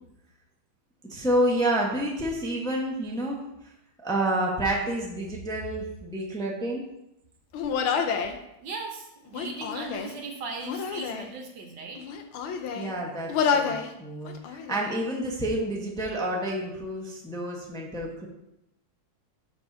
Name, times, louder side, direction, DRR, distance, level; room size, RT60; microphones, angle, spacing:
voice 1, 1.0-3.7 4.0-6.8 12.7-18.3, right 1 dB, 5° left, -2 dB, 0.7 m, -29 dB
Human voice, 7.5-8.4 9.3-10.2 10.6-11.3 12.0-12.9 13.3-13.9 14.3-14.9, left 6 dB, 90° left, 1.6 m, -29 dB
voice 2, 8.6-12.0, right 3 dB, 65° right, 2 dB, 1.5 m, -38 dB
12.5 x 4.5 x 2.8 m, 0.85 s
omnidirectional pair, 2.2 m